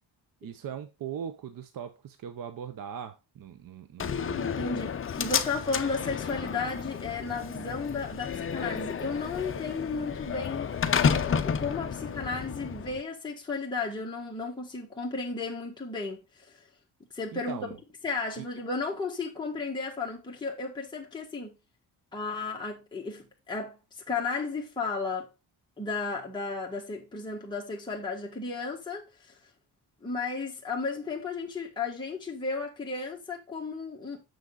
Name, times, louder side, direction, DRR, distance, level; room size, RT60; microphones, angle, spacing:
voice 1, 0.4-4.8 17.3-17.8 18.4-18.5, right 8 dB, 55° right, 0.8 m, -40 dB
Slam, 4.0-13.0, left 7 dB, 30° left, 0.6 m, -31 dB
voice 2, 4.4-10.7 11.0-16.6 17.1-17.6 18.0-21.6 22.1-23.8 24.1-25.3 25.8-29.3 30.0-34.2, left 4 dB, 10° left, 1.5 m, -34 dB
6.7 x 6.2 x 3.8 m
wide cardioid pair, 155°, 41 cm